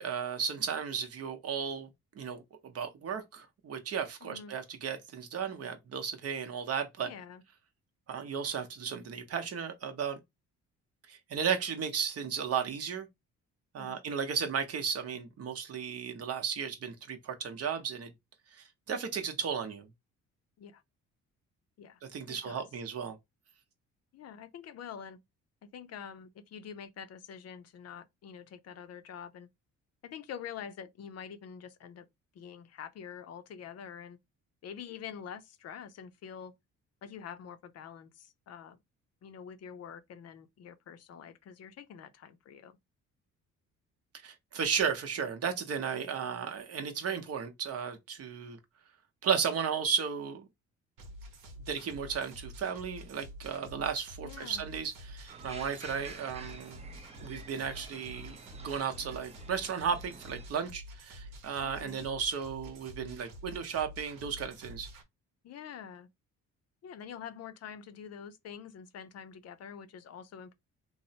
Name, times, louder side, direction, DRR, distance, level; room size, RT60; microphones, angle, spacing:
voice 1, 0.0-7.1 8.1-10.2 11.1-13.1 13.7-18.1 18.5-19.9 22.1-23.2 44.2-48.6 49.2-50.5 51.7-56.8 57.2-58.4 58.6-64.9, right 6 dB, 50° right, 0.8 m, -34 dB
voice 2, 4.2-4.5 7.0-7.4 13.8-14.0 20.6-20.8 21.8-22.0 22.3-22.7 24.1-25.2 25.6-29.5 30.0-32.1 32.3-34.2 34.6-36.5 37.0-38.8 39.2-42.8 54.2-54.7 61.6-62.1 65.4-66.1 66.8-70.5, left 8 dB, 50° left, 0.5 m, -46 dB
sound 1, 51.0-65.0, equal, 85° right, 0.8 m, -48 dB
sound 2, 55.3-60.5, right 4 dB, 20° right, 0.5 m, -50 dB
3.0 x 2.0 x 2.7 m
cardioid pair, 95°, 31 cm